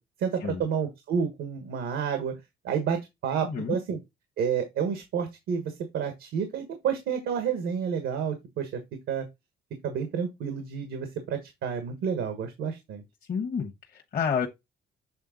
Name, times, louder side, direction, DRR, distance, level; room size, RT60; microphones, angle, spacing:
voice 1, 0.2-2.3 2.6-4.0 4.4-8.8 9.1-9.3 9.8-13.0, right 7 dB, 85° right, 1.5 m, -30 dB
voice 2, 3.4-3.8 13.3-14.5, left 6 dB, 45° left, 1.2 m, -29 dB
7.7 x 3.5 x 3.9 m
cardioid pair, 90°, 20 cm